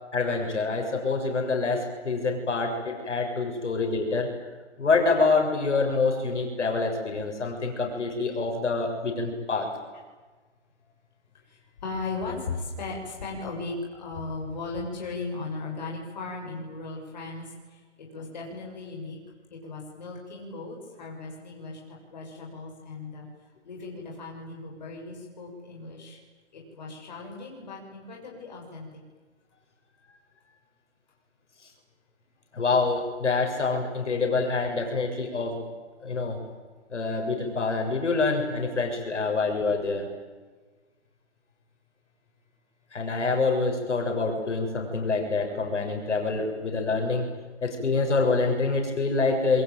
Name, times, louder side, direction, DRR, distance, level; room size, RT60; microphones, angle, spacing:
voice 1, 0.1-4.3 4.8-9.7 31.6-31.7 32.5-35.6 36.0-36.4 36.9-40.1 42.9-47.3 47.6-49.6, left 3 dB, 80° left, 3 dB, 7.0 m, -26 dB
voice 2, 11.4-19.2 19.5-23.3 23.6-26.2 26.5-28.9, left 3 dB, 40° left, -1 dB, 7.0 m, -37 dB
26.5 x 23.0 x 9.2 m, 1.4 s
hypercardioid pair, 180°, 35 cm